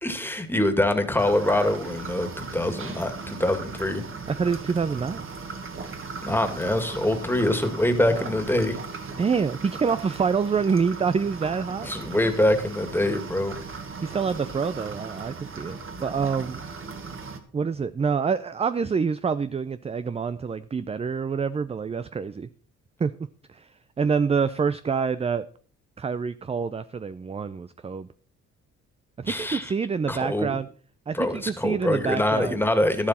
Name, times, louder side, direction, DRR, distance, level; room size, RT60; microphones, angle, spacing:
voice 1, 0.0-4.0 6.2-8.8 11.8-13.6 29.3-29.7 30.1-30.6 31.1-33.1, left 1 dB, 5° left, 8 dB, 2.0 m, -24 dB
sound 1, 1.2-17.4, right 4 dB, 45° right, 1.9 m, -37 dB
voice 2, 4.3-5.3 9.2-11.9 14.0-16.7 17.5-22.5 23.0-23.7 24.0-25.4 26.0-28.1 29.2-30.7 31.1-32.5, right 5 dB, 20° right, 13 dB, 0.5 m, -27 dB
12.0 x 11.5 x 4.3 m, 0.43 s
cardioid pair, 90°, 30 cm